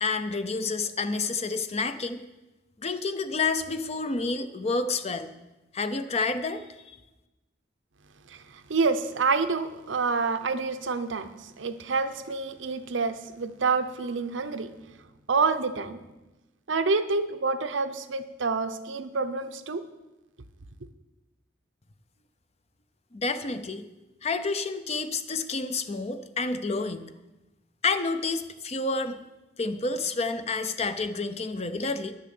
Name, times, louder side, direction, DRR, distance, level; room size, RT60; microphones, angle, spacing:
voice 1, 0.0-2.2 2.8-5.3 5.7-7.0 23.1-23.8 24.2-27.1 27.8-29.2 29.6-32.1, left 3 dB, 35° left, 10 dB, 0.6 m, -29 dB
voice 2, 8.3-14.7 15.3-16.0 16.7-19.8, right 4 dB, 85° right, 9 dB, 0.7 m, -28 dB
10.5 x 6.7 x 7.8 m, 1.0 s
head